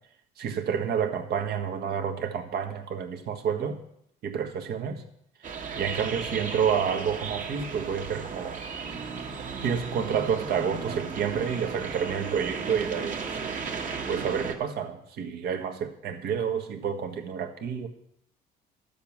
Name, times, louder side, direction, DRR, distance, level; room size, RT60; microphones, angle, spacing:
voice 1, 0.4-3.8 4.2-5.0 5.8-8.6 9.6-13.2 14.1-17.9, right 7 dB, 70° right, 6 dB, 1.6 m, -29 dB
sound 1, 5.4-14.5, right 5 dB, 50° right, 1.8 m, -35 dB
12.0 x 7.3 x 7.3 m, 0.72 s
cardioid pair, 110°, 17 cm